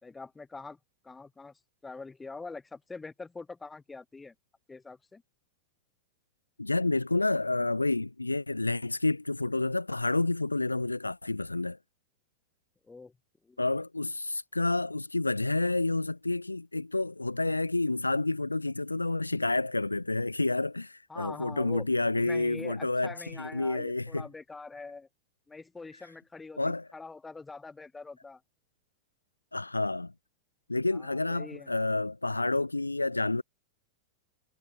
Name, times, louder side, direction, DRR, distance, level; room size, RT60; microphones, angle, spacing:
voice 1, 0.0-0.8 1.0-4.3 4.7-5.2 12.9-13.2 13.4-13.6 21.1-21.9 22.2-25.1 25.5-28.4 30.9-31.8, left 3 dB, 10° left, 4.2 m, -44 dB
voice 2, 6.6-11.8 13.6-24.3 26.6-26.9 29.5-30.1 30.7-33.4, left 2 dB, 85° left, 0.9 m, -29 dB
figure-of-eight pair, 90°, 0 cm